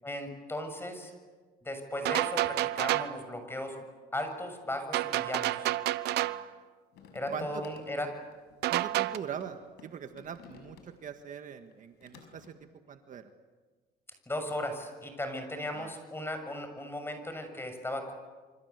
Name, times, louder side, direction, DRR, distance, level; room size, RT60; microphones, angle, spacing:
voice 1, 0.0-1.1 1.6-3.7 4.1-5.7 7.1-8.1 14.3-18.1, left 1 dB, 15° left, 7 dB, 6.8 m, -36 dB
sound 1, 2.1-3.2 4.9-6.5 8.6-9.2, right 15 dB, 80° right, 1.0 m, -29 dB
sound 2, 6.9-11.2 11.6-12.5, left 6 dB, 80° left, 6.2 m, -55 dB
voice 2, 7.3-7.6 8.7-13.3 15.7-15.9, right 8 dB, 50° right, 7 dB, 1.7 m, -42 dB
28.0 x 25.5 x 8.3 m, 1.4 s
cardioid pair, 110°, 17 cm